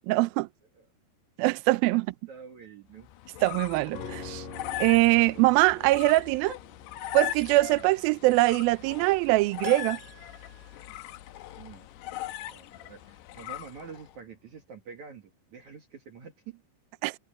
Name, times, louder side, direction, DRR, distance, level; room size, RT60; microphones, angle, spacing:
voice 1, 0.1-0.5 1.4-2.1 3.4-4.4 4.8-6.5 7.1-10.0 17.0-17.2, right 20 dB, 90° right, 2.1 m, -23 dB
voice 2, 1.9-3.1 11.6-11.9 12.5-16.6, right 6 dB, 50° right, 2.9 m, -47 dB
sound 1, 3.0-14.2, left 14 dB, 75° left, 2.8 m, -40 dB
sound 2, 3.9-13.3 13.6-13.7, left 4 dB, 50° left, 4.2 m, -47 dB
Piano, 9.6-11.7 12.0-12.1, right 12 dB, 75° right, 3.8 m, -48 dB
omnidirectional pair, 5.1 m